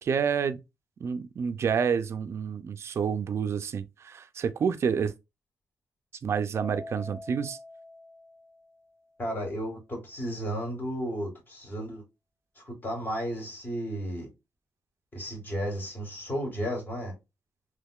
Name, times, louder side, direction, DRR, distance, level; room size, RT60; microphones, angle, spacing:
voice 1, 0.0-0.6 1.0-5.1 6.2-7.6, right 6 dB, 50° right, 0.4 m, -28 dB
Keyboard (musical), 6.5-9.0, left 2 dB, 10° right, 0.6 m, -45 dB
voice 2, 9.2-12.0 12.6-14.3 15.1-17.1, equal, 35° left, 1.7 m, -33 dB
3.5 x 3.0 x 2.3 m
wide cardioid pair, 145°, 6 cm